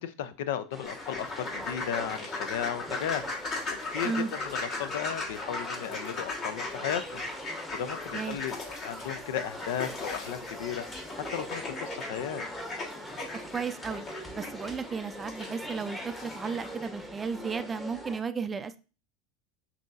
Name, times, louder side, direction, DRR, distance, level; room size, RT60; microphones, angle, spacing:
voice 1, 0.0-12.4, left 9 dB, 70° left, 13 dB, 0.4 m, -35 dB
sound 1, 0.7-18.2, equal, 5° left, 0.9 m, -42 dB
sound 2, 0.8-16.9, left 3 dB, 45° left, 1.3 m, -38 dB
voice 2, 13.5-14.0 14.4-18.8, right 5 dB, 25° right, 11 dB, 0.4 m, -34 dB
6.0 x 2.7 x 2.5 m, 0.33 s
hypercardioid pair, 95°, 0 cm